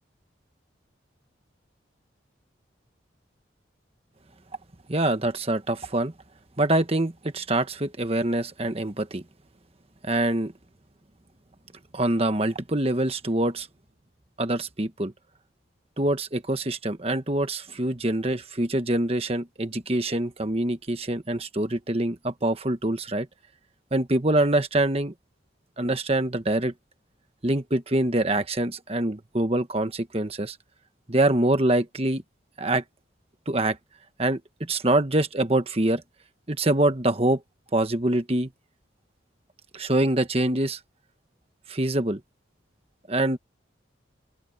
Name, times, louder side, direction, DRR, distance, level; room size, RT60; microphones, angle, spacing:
voice 1, 4.9-6.1 6.6-9.2 10.0-10.5 11.9-13.7 14.4-15.1 16.0-23.3 23.9-25.1 25.8-26.7 27.4-30.6 31.1-32.2 32.6-32.8 33.5-33.8 34.2-36.0 36.5-37.4 37.7-38.5 39.7-40.8 41.7-42.2 43.1-43.4, right 1 dB, 30° right, 1.3 m, -25 dB
open air
head